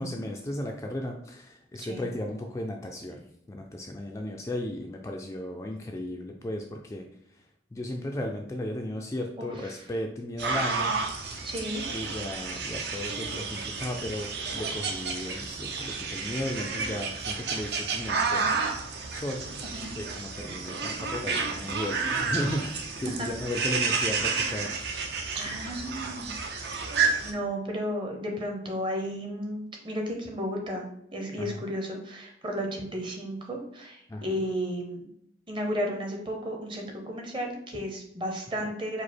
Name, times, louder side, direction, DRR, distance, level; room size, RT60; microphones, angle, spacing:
voice 1, 0.0-3.2 3.5-7.0 7.7-10.9 11.3-11.5 11.9-18.5 18.9-19.5 20.0-24.8 25.9-26.1 31.4-31.6 34.1-34.4 38.6-38.7, left 1 dB, 15° left, 1 dB, 0.3 m, -35 dB
voice 2, 1.8-2.1 9.4-9.8 11.4-11.8 19.6-19.9 21.3-21.6 23.1-23.3 25.3-26.4 26.9-35.1 35.5-39.0, equal, 25° right, 1 dB, 0.8 m, -34 dB
sound 1, 10.4-27.3, right 4 dB, 60° right, 0.6 m, -31 dB
4.9 x 2.0 x 4.3 m, 0.75 s
head